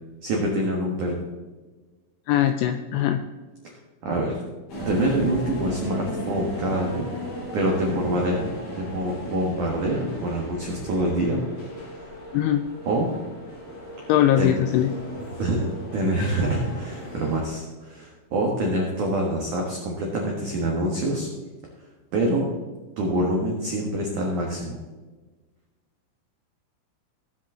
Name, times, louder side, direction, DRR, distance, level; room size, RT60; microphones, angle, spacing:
voice 1, 0.2-1.2 4.0-4.4 4.9-7.1 7.5-8.5 8.7-11.4 12.0-12.1 12.8-13.1 14.4-14.5 15.4-21.3 22.1-22.5 23.0-24.8, right 1 dB, 80° right, -1 dB, 1.8 m, -25 dB
voice 2, 2.3-3.2 12.3-12.6 14.1-14.9, left 11 dB, 85° left, 9 dB, 2.7 m, -21 dB
sound 1, 4.7-17.4, equal, 45° left, 4.1 m, -36 dB
18.5 x 7.6 x 3.7 m, 1.3 s
omnidirectional pair, 6.0 m